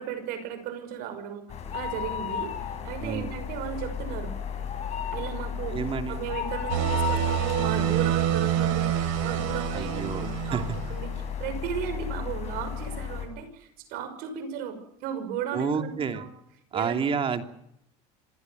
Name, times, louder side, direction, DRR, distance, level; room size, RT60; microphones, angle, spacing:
voice 1, 0.0-2.5 2.8-4.3 5.1-5.8 6.1-11.1 11.4-16.3 16.7-17.0, right 8 dB, 65° right, 10 dB, 6.0 m, -35 dB
sound 1, 1.5-13.3, left 7 dB, 40° left, 7.7 m, -34 dB
voice 2, 3.0-3.3 5.7-6.3 9.7-10.8 15.5-16.3 16.7-17.5, right 6 dB, 35° right, 7 dB, 2.9 m, -30 dB
sound 2, 6.7-11.1, right 12 dB, 90° right, 5.8 m, -27 dB
27.0 x 16.5 x 7.9 m, 0.78 s
supercardioid pair, 110°, 16 cm